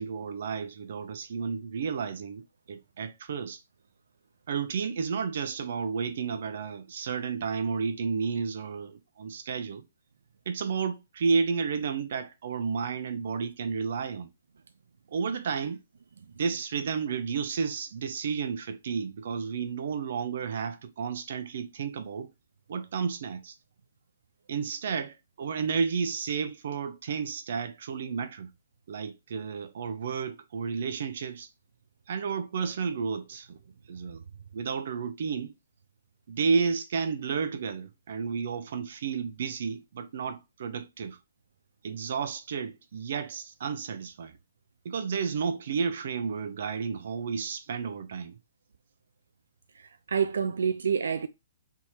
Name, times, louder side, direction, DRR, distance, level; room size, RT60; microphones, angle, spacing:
voice 1, 0.0-3.6 4.5-9.8 10.5-14.3 15.1-15.8 16.3-22.3 22.7-23.5 24.5-28.5 28.9-31.5 32.1-33.6 33.9-34.2 34.5-35.5 36.3-41.2 41.8-44.3 44.8-48.4, right 5 dB, 55° right, 0.7 m, -32 dB
voice 2, 49.8-51.3, right 6 dB, 90° right, 0.4 m, -28 dB
3.5 x 3.0 x 4.3 m
hypercardioid pair, 165°, 0 cm